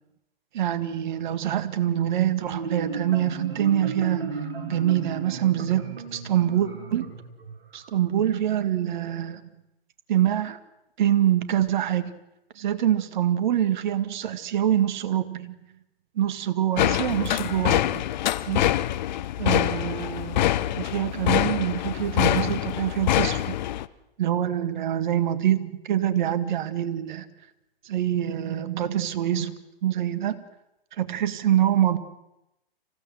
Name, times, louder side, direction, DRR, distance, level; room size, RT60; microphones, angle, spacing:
voice 1, 0.5-4.4 4.7-7.1 7.7-9.4 10.1-10.6 11.0-12.1 12.6-15.6 16.2-18.0 18.5-18.7 19.4-23.6 24.2-27.3 27.9-29.5 29.8-30.4 31.0-32.0, right 11 dB, 50° right, 12 dB, 1.8 m, -25 dB
Marimba xylophone, 2.4-8.0, right 4 dB, 65° right, 4.7 m, -34 dB
sound 1, 16.8-23.9, left 13 dB, 50° left, 0.9 m, -25 dB
26.0 x 16.0 x 7.8 m, 0.91 s
figure-of-eight pair, 115°, 30 cm